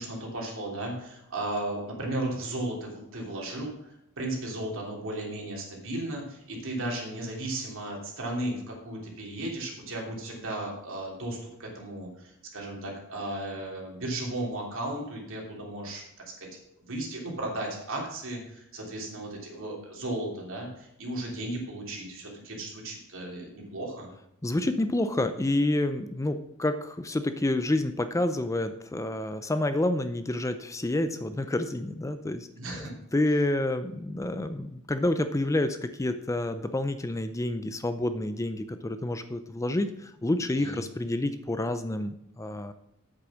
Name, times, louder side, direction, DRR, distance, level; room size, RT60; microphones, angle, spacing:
voice 1, 0.0-16.0 16.4-16.5 16.8-24.1 32.5-32.9 40.5-40.8, right 1 dB, 65° right, -1 dB, 3.2 m, -35 dB
voice 2, 24.4-32.5 32.8-42.7, left 1 dB, 15° left, 10 dB, 0.5 m, -29 dB
8.4 x 7.8 x 6.2 m, 0.80 s
head